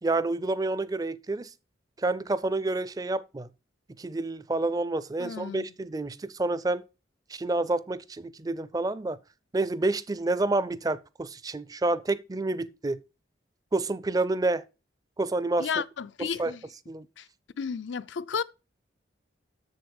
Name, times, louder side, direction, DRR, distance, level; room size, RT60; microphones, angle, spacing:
voice 1, 0.0-1.5 2.0-3.5 4.0-6.8 7.3-9.2 9.5-13.0 13.7-14.6 15.2-15.7 16.2-16.5 16.9-17.1, right 2 dB, 20° right, 0.4 m, -28 dB
voice 2, 5.2-5.6 15.6-16.6 17.2-17.3 17.6-18.4, left 6 dB, 75° left, 0.5 m, -32 dB
7.9 x 7.1 x 5.2 m
head